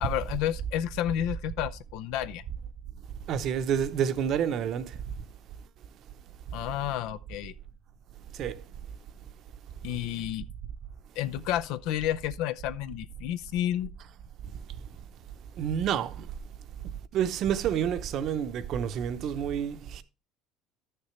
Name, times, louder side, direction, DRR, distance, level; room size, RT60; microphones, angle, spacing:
voice 1, 0.0-2.4 6.5-7.5 9.8-10.4 11.2-13.9, left 12 dB, 75° left, 0.5 m, -31 dB
voice 2, 3.3-5.0 8.4-8.6 15.6-16.3 17.1-20.0, right 8 dB, 50° right, 0.7 m, -29 dB
12.5 x 6.7 x 3.2 m
cardioid pair, 130°, 0 cm